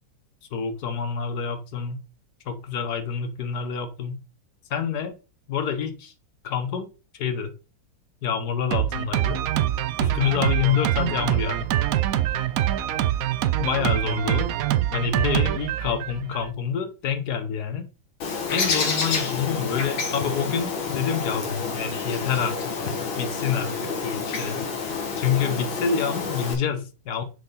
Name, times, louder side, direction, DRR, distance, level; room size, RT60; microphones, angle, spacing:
voice 1, 0.5-2.0 2.5-4.1 4.7-5.2 5.5-6.1 6.4-6.9 7.2-7.5 8.2-9.4 10.0-11.7 13.6-14.5 14.9-17.9 18.5-22.6 23.2-24.6 25.2-27.2, left 7 dB, 60° left, 1.4 m, -27 dB
Drum kit, 8.7-16.5, right 12 dB, 90° right, 0.7 m, -24 dB
Bird, 18.2-26.5, left 4 dB, 85° left, 2.6 m, -29 dB
6.6 x 5.8 x 4.1 m
omnidirectional pair, 2.1 m